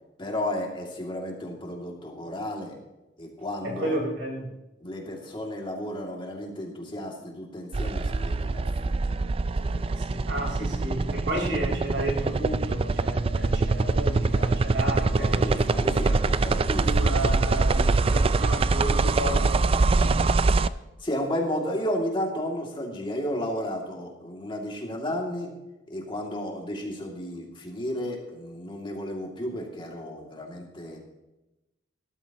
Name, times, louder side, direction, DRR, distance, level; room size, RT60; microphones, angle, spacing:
voice 1, 0.2-2.7 3.2-4.0 4.8-9.1 9.6-10.0 15.1-16.9 19.8-19.9 21.0-25.5 25.9-31.0, left 1 dB, 25° left, 0 dB, 2.5 m, -33 dB
voice 2, 3.6-4.5 10.1-15.7 16.1-16.3 16.6-20.3, right 1 dB, 85° right, -1 dB, 4.4 m, -32 dB
sound 1, 7.7-20.7, right 3 dB, 30° right, 0.4 m, -24 dB
18.5 x 13.0 x 3.0 m, 1.0 s
head